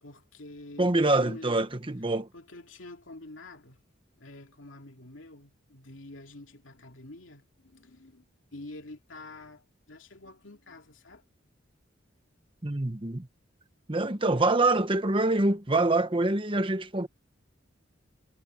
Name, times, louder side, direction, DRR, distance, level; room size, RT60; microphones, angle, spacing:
voice 1, 0.0-1.5 2.3-3.8 4.2-8.3 8.5-11.2 14.3-14.5, left 2 dB, 85° left, 2.6 m, -47 dB
voice 2, 0.8-2.3 12.6-13.3 13.9-17.1, right 2 dB, 25° right, 1.2 m, -25 dB
head